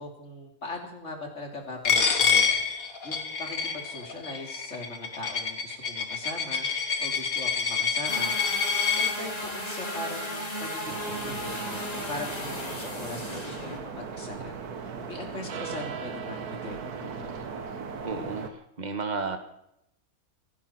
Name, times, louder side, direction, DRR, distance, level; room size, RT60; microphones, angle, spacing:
voice 1, 0.0-2.5 3.0-6.7 7.0-8.4 8.9-14.6 15.1-17.3, left 2 dB, 50° left, 2 dB, 3.3 m, -40 dB
Coin (dropping), 1.9-9.1, left 6 dB, 70° left, 2.0 m, -27 dB
sound 1, 8.1-13.8, equal, 25° left, 3.0 m, -35 dB
sound 2, 10.9-18.5, right 6 dB, 90° right, 1.8 m, -38 dB
voice 2, 18.0-19.4, right 4 dB, 30° right, 6 dB, 1.7 m, -33 dB
27.0 x 11.0 x 4.4 m, 0.79 s
omnidirectional pair, 1.6 m